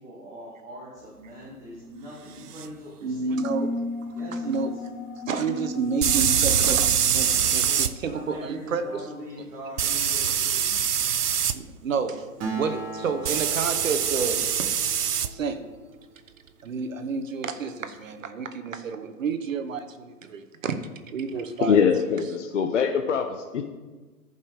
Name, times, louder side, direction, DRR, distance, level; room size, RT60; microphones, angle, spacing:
voice 1, 0.0-3.3 4.1-4.8 7.1-10.8, equal, 5° right, -5 dB, 0.6 m, -42 dB
sound 1, 2.6-2.7 6.0-7.9 9.8-11.6 13.3-15.3, right 8 dB, 80° right, 0.6 m, -23 dB
voice 2, 3.0-3.7 4.4-4.7 5.3-8.9 10.2-10.6 11.5-12.3 12.5-14.4 15.3-15.6 16.6-20.8 21.1-21.8, right 5 dB, 60° right, 9 dB, 1.0 m, -30 dB
sound 2, 3.3-8.5, left 1 dB, 30° left, 1.5 m, -35 dB
Acoustic guitar, 12.4-16.1, right 4 dB, 30° right, 1.6 m, -37 dB
voice 3, 21.6-23.6, left 6 dB, 55° left, 6 dB, 0.7 m, -23 dB
14.5 x 5.4 x 3.5 m, 1.3 s
figure-of-eight pair, 120°, 46 cm